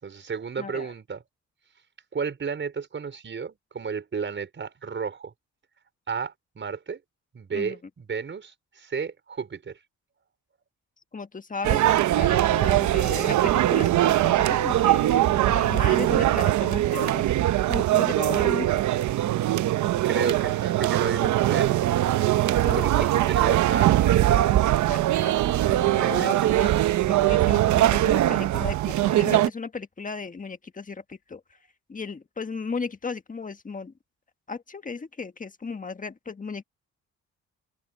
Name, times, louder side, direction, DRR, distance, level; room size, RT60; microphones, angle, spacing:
voice 1, 0.0-1.2 2.1-5.3 6.1-7.0 7.3-9.8 20.0-21.8 22.5-24.4 26.0-26.6, right 6 dB, 40° right, 5.2 m, -32 dB
voice 2, 0.6-0.9 7.5-7.8 11.1-17.2 17.7-18.8 22.7-23.1 24.8-26.7 27.1-31.4 31.9-33.9 34.5-36.6, left 4 dB, 25° left, 1.6 m, -35 dB
sound 1, 11.6-29.5, right 14 dB, 70° right, 0.9 m, -21 dB
open air
cardioid pair, 90°, 30 cm